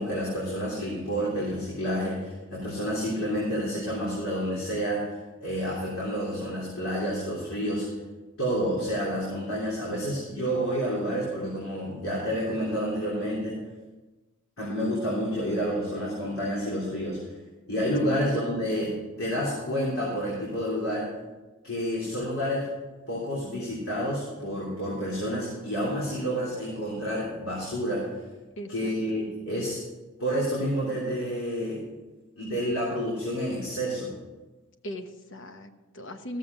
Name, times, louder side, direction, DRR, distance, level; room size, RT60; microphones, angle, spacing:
voice 1, 0.0-7.9 8.4-13.6 14.6-17.2 17.7-18.9 19.2-21.1 21.6-22.7 23.1-28.1 28.7-29.8 30.2-31.8 32.4-34.1, equal, 80° left, -6 dB, 3.5 m, -29 dB
voice 2, 28.6-28.9 34.8-36.4, equal, 65° left, 7 dB, 1.0 m, -38 dB
14.5 x 7.5 x 5.4 m, 1.2 s
head